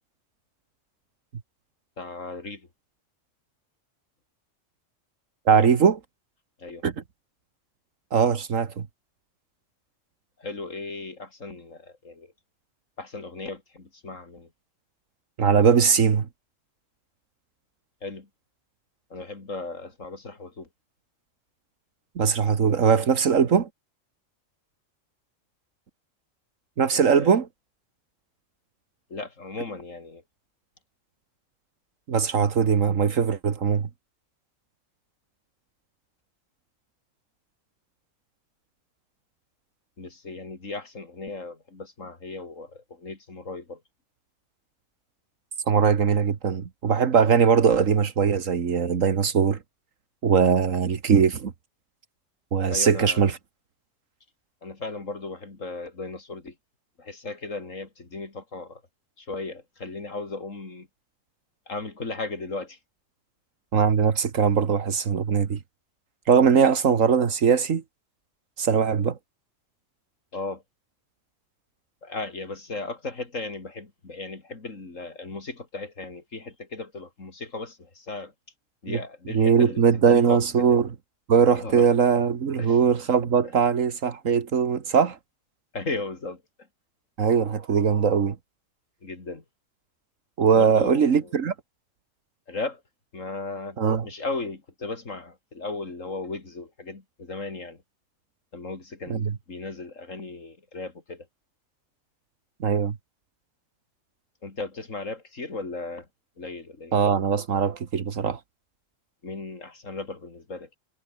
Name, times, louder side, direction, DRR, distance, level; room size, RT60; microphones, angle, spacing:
voice 1, 2.0-2.7 6.6-6.9 10.4-12.3 13.0-14.5 18.0-18.3 19.1-20.7 26.9-27.3 29.1-30.2 40.0-43.8 52.7-53.3 54.6-56.6 57.0-58.8 59.2-60.9 61.7-62.8 66.5-66.7 70.3-70.6 72.0-78.3 78.8-80.8 81.5-81.9 82.6-82.8 85.7-86.4 89.0-89.4 90.5-91.3 92.5-92.8 93.1-97.8 98.5-101.3 104.4-106.1 106.4-106.9 109.2-110.8, left 3 dB, 80° left, 3.7 m, -36 dB
voice 2, 5.5-6.0 6.8-6.9 8.1-8.8 15.4-16.3 22.2-23.7 26.8-27.5 32.1-33.9 45.7-49.6 50.2-51.5 52.5-53.3 63.7-65.6 66.3-67.8 68.6-69.2 78.9-79.0 79.3-80.9 81.3-85.2 87.2-88.4 90.4-91.5 93.8-94.1 99.1-99.3 102.6-103.0 106.9-108.4, right 6 dB, 85° right, 1.8 m, -21 dB
omnidirectional pair, 1.3 m